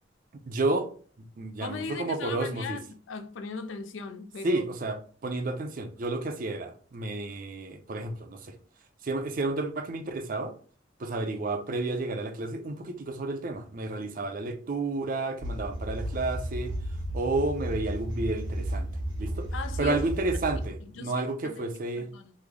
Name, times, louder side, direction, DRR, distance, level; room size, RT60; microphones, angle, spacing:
voice 1, 0.5-0.9 1.4-2.8 4.4-8.6 9.0-10.5 11.0-16.7 17.1-18.9 19.2-22.1, right 2 dB, 45° right, 0.4 m, -31 dB
voice 2, 1.6-4.6 19.5-20.0 20.9-21.6 22.0-22.3, left 4 dB, 90° left, 0.4 m, -38 dB
sound 1, 15.4-20.7, right 1 dB, 85° right, 1.0 m, -33 dB
3.1 x 2.0 x 3.6 m
head